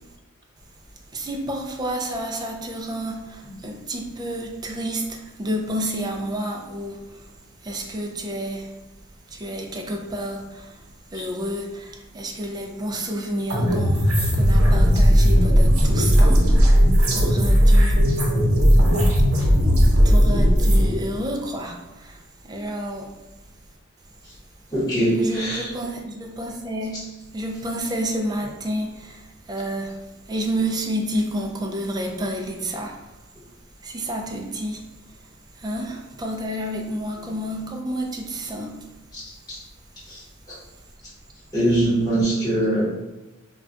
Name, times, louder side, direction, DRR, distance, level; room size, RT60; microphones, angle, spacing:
voice 1, 1.1-7.0 7.6-8.7 9.3-10.7 11.1-14.1 14.3-16.5 17.1-18.0 20.0-22.2 22.4-23.1 25.2-27.0 27.3-30.0 30.3-33.0 33.8-34.8 35.6-38.9, right 1 dB, 20° right, 1 dB, 0.3 m, -30 dB
sound 1, 13.5-20.9, equal, 80° right, 0.7 m, -16 dB
voice 2, 24.7-25.7 26.9-27.0 39.1-39.6 40.1-40.2 41.5-42.9, right 1 dB, 20° left, -13 dB, 0.9 m, -22 dB
2.3 x 2.2 x 3.7 m, 1.1 s
head